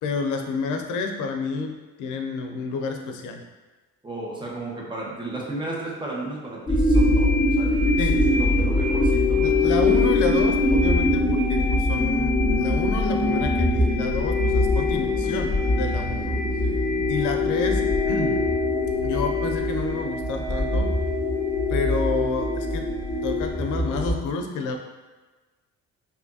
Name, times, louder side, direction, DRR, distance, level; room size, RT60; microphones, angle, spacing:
voice 1, 0.0-3.4 8.0-8.3 9.4-16.4 17.1-18.5 19.0-21.0 21.7-22.9 23.2-24.8, left 4 dB, 85° left, 4 dB, 0.5 m, -29 dB
voice 2, 4.0-9.7 16.6-16.8, right 2 dB, 15° right, -4 dB, 1.1 m, -34 dB
sound 1, 6.7-24.1, left 2 dB, 15° left, 1.0 m, -22 dB
4.8 x 2.6 x 2.7 m, 1.2 s
cardioid pair, 90°, 30 cm